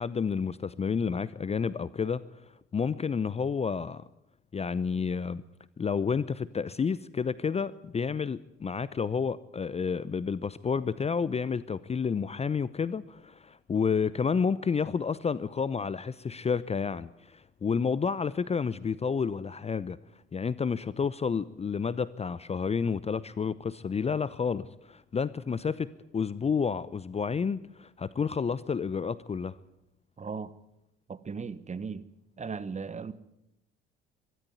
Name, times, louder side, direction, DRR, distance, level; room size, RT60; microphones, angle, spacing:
voice 1, 0.0-2.2 2.7-4.0 4.5-5.4 5.8-20.0 20.3-29.6, left 6 dB, 20° left, 0.7 m, -30 dB
voice 2, 30.2-30.5 31.1-32.1 32.4-33.1, right 5 dB, 25° right, 1.2 m, -37 dB
23.5 x 12.5 x 9.4 m
figure-of-eight pair, 55°, 29 cm